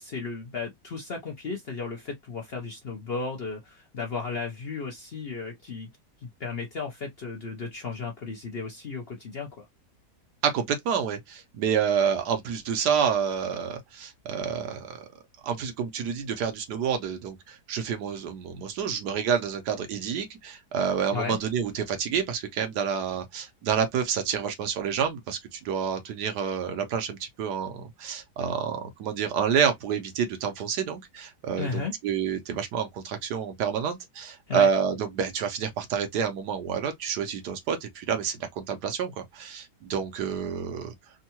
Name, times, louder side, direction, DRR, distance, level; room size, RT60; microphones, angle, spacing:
voice 1, 0.0-5.9 6.2-9.6 21.1-21.4 31.6-31.9 34.5-34.7, left 4 dB, 55° left, 0.7 m, -34 dB
voice 2, 10.4-15.1 15.4-40.9, right 7 dB, 75° right, 1.3 m, -28 dB
3.6 x 2.2 x 2.8 m
omnidirectional pair, 1.8 m